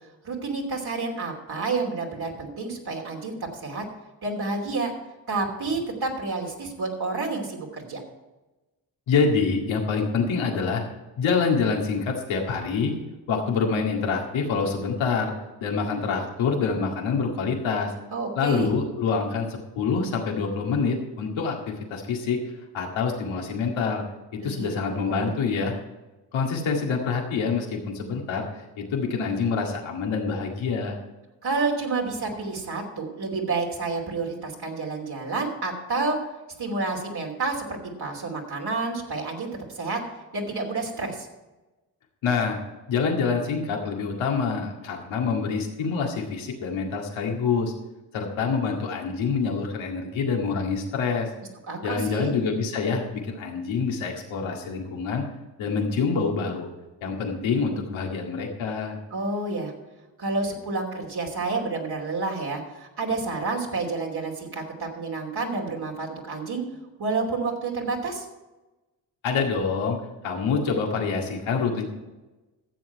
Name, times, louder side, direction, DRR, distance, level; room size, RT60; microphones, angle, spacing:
voice 1, 0.2-3.3 3.6-3.8 4.2-4.9 5.3-8.0 18.1-18.7 24.4-25.3 31.4-36.2 36.6-37.6 38.0-39.5 39.7-40.0 40.3-41.3 51.7-52.3 59.1-59.7 60.2-66.6 67.0-68.3, right 3 dB, 55° right, -1 dB, 3.0 m, -29 dB
voice 2, 9.1-10.8 11.2-13.0 13.3-15.3 15.6-17.9 18.4-22.4 22.7-24.0 24.3-25.8 26.3-28.5 28.8-31.0 42.2-42.6 42.9-47.7 48.1-51.3 51.8-55.2 55.6-56.7 57.0-59.0 69.2-70.0 70.2-71.9, left 5 dB, 85° left, 1 dB, 2.1 m, -26 dB
14.0 x 7.6 x 4.6 m, 1.1 s
supercardioid pair, 50°, 45 cm